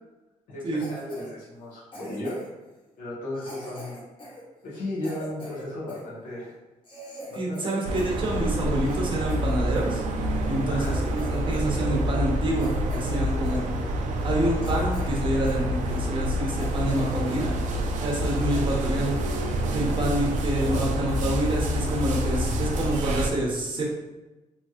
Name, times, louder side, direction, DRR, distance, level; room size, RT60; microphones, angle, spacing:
voice 1, 0.5-2.4 3.0-4.0 4.6-6.5 7.3-8.1 10.6-11.0 20.6-20.9, left 1 dB, 85° left, -6 dB, 1.1 m, -35 dB
Cough, 0.8-1.3 1.9-2.6 3.3-6.1 6.5-6.6 6.8-8.2 8.5-9.9 10.4-10.5 10.8-11.7 12.0-12.2 12.6-13.2 13.4-13.6 14.1-14.2 14.6-15.7 16.1-16.2 16.6-17.3 17.6-17.7 18.0-18.3 18.5-18.7 19.2-19.4, equal, 40° left, 1.0 m, -44 dB
voice 2, 7.4-10.0 10.5-10.8 11.1-13.6 14.2-17.5 18.0-19.1 19.7-23.8, right 1 dB, 40° right, -2 dB, 0.7 m, -27 dB
sound 1, 7.8-23.3, equal, 70° right, 0.4 m, -27 dB
3.1 x 2.7 x 2.4 m, 1.1 s
cardioid pair, 120°, 13 cm